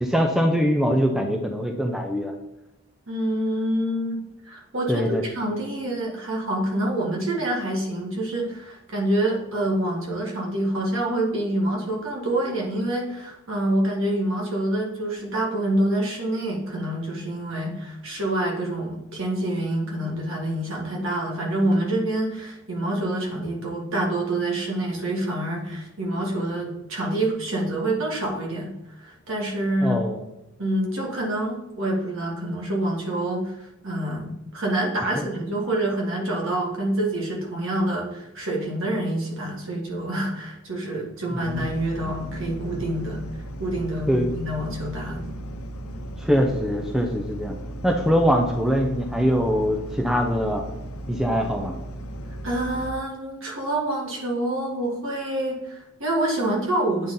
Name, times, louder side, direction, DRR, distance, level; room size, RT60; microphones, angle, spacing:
voice 1, 0.0-2.3 4.9-5.2 29.8-30.2 35.1-35.3 41.5-41.7 42.0-42.1 44.1-44.4 46.2-47.6 47.8-50.6 51.1-51.7, equal, ahead, 2 dB, 0.5 m, -23 dB
voice 2, 3.1-4.2 4.5-30.1 30.6-33.5 33.8-43.2 43.6-45.4 52.4-57.1, right 1 dB, 65° right, -2 dB, 1.9 m, -27 dB
sound 1, 41.4-52.9, right 1 dB, 90° left, 0.8 m, -36 dB
8.6 x 4.0 x 3.8 m, 0.92 s
head